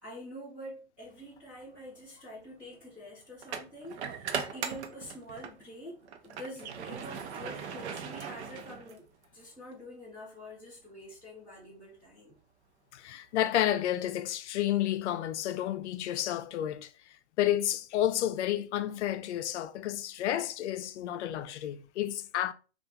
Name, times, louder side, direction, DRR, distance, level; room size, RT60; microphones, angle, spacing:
voice 1, 0.0-9.0 9.3-12.4, equal, 5° right, 0.3 m, -46 dB
sound 1, 1.4-1.6 3.4-5.6 6.0-9.2, right 7 dB, 75° right, 0.7 m, -39 dB
voice 2, 12.9-16.9 17.4-22.5, left 12 dB, 85° left, 0.5 m, -31 dB
2.7 x 2.4 x 3.5 m
supercardioid pair, 165°, 34 cm